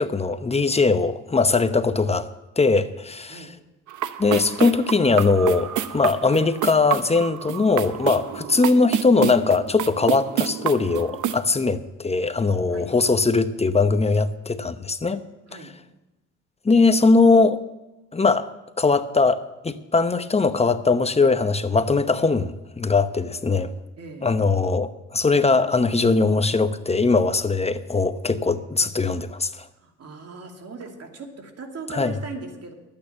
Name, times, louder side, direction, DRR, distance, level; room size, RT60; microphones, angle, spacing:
voice 1, 0.0-2.3 2.6-3.5 4.2-15.2 16.6-17.6 18.1-18.5 18.8-23.7 24.2-29.6 31.9-32.1, left 3 dB, 20° left, 11 dB, 0.9 m, -20 dB
sound 1, 3.9-11.4, right 10 dB, 75° right, 0.8 m, -29 dB
voice 2, 24.0-24.3 29.8-32.7, right 4 dB, 55° right, 3 dB, 2.6 m, -38 dB
12.0 x 8.8 x 7.1 m, 1.0 s
cardioid pair, 90°, 30 cm